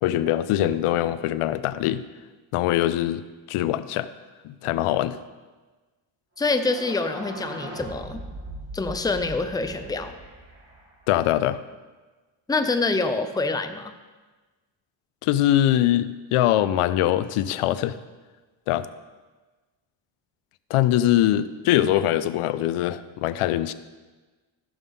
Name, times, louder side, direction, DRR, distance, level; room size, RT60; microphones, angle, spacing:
voice 1, 0.0-2.0 2.5-4.1 4.4-5.2 11.1-11.6 15.2-18.0 18.7-18.9 20.7-23.7, left 13 dB, 85° left, 15 dB, 0.6 m, -22 dB
voice 2, 6.4-8.2 8.7-10.1 12.5-13.9, left 3 dB, 10° left, 8 dB, 0.5 m, -26 dB
sound 1, 6.4-11.2, right 1 dB, 30° right, 3.8 m, -40 dB
15.0 x 6.9 x 3.7 m, 1.3 s
cardioid pair, 120°, 50 cm